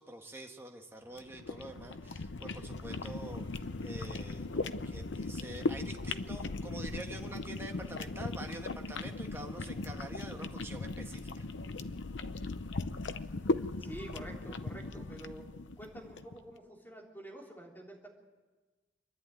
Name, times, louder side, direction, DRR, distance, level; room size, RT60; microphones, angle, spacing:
voice 1, 0.0-11.5, right 1 dB, 10° right, 3 dB, 1.4 m, -46 dB
sound 1, 1.1-16.4, left 3 dB, 70° left, 0.7 m, -38 dB
voice 2, 13.8-15.5 15.8-18.1, right 1 dB, 10° left, -2 dB, 3.4 m, -48 dB
26.0 x 11.0 x 9.3 m, 1.3 s
head